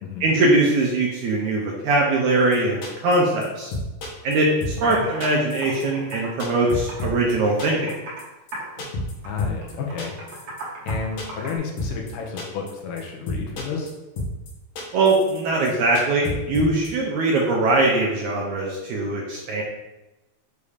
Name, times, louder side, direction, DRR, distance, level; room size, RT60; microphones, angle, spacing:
voice 1, 0.2-3.7 4.2-7.9 14.9-19.6, right 2 dB, 75° right, -2 dB, 1.9 m, -21 dB
sound 1, 2.5-2.6 2.8-3.2 3.4-3.5 3.7-4.4 4.6-4.9 5.2-5.8 6.1-7.3 7.6-7.9 8.2-8.3 8.5-8.6 8.8-9.1 9.4-9.7 10.0-10.6 10.9-11.5 11.8-12.1 12.4-12.7 13.0-13.1 13.3-13.9 14.2-14.5 14.8-15.4 15.7-15.8 15.9-16.9, left 2 dB, 60° left, 2.0 m, -30 dB
Computer keyboard, 4.6-4.7 4.9-5.3 5.6-7.2 7.5-8.3 8.5-8.9 9.2-11.6, right 2 dB, 55° right, 2.3 m, -37 dB
voice 2, 9.2-10.2 10.8-13.9, left 5 dB, 75° left, 0 dB, 2.3 m, -31 dB
7.0 x 2.7 x 4.9 m, 1.0 s
omnidirectional pair, 4.0 m